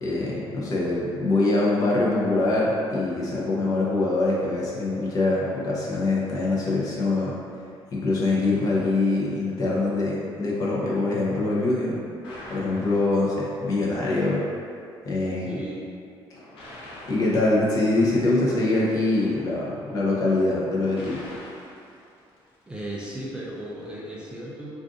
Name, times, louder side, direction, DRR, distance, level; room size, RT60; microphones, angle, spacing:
voice 1, 0.0-7.3 7.9-12.0 12.5-14.4 15.0-15.6 17.1-21.2, left 2 dB, 40° left, -5 dB, 0.6 m, -24 dB
sound 1, 12.2-13.7 16.3-22.9, left 1 dB, 80° left, 0.7 m, -45 dB
voice 2, 15.4-15.8 22.7-24.7, right 1 dB, 10° right, -6 dB, 0.3 m, -35 dB
2.5 x 2.4 x 3.7 m, 2.5 s
cardioid pair, 155°, 9 cm